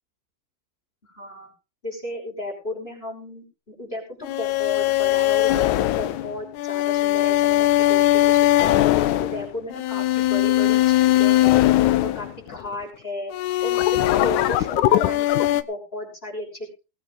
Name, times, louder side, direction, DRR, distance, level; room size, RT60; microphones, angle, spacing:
voice 1, 1.0-1.5 1.8-8.7 9.1-11.7 12.0-13.3 13.6-16.7, left 1 dB, 15° left, 0 dB, 6.2 m, -34 dB
sound 1, 4.2-12.7 13.3-15.6, left 14 dB, 70° left, 2.0 m, -20 dB
21.0 x 8.8 x 3.9 m, 0.32 s
omnidirectional pair, 4.1 m